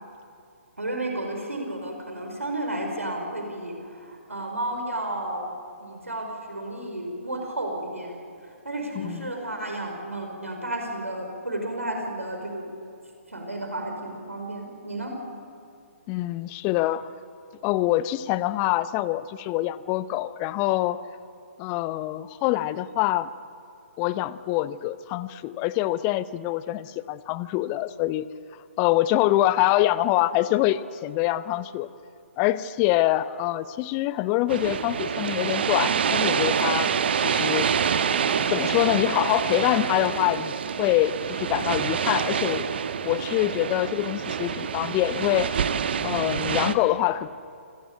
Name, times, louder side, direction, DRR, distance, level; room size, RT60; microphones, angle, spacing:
voice 1, 0.8-5.5 5.8-8.2 8.6-12.7 13.3-15.1, right 1 dB, 80° right, 3 dB, 4.9 m, -32 dB
voice 2, 8.9-9.3 16.1-17.1 17.6-21.0 21.6-23.3 24.0-28.3 28.8-31.9 32.4-36.9 37.2-37.7 38.5-42.7 43.0-45.6 46.0-47.3, left 15 dB, 20° left, 17 dB, 0.7 m, -25 dB
sound 1, 34.5-46.8, right 7 dB, 50° right, 1.3 m, -26 dB
28.5 x 19.5 x 8.5 m, 2.5 s
figure-of-eight pair, 130°, 7 cm